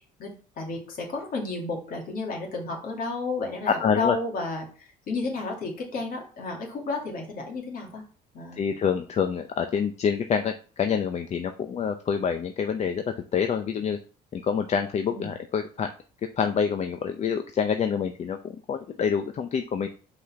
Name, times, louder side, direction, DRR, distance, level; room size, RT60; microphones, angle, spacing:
voice 1, 0.6-8.0 8.3-8.7 15.1-15.3, left 3 dB, 55° left, 0 dB, 2.5 m, -32 dB
voice 2, 3.8-4.2 8.6-14.0 14.3-15.9 16.3-19.9, left 7 dB, 40° left, 7 dB, 0.6 m, -27 dB
5.4 x 4.2 x 5.6 m, 0.39 s
cardioid pair, 110°, 17 cm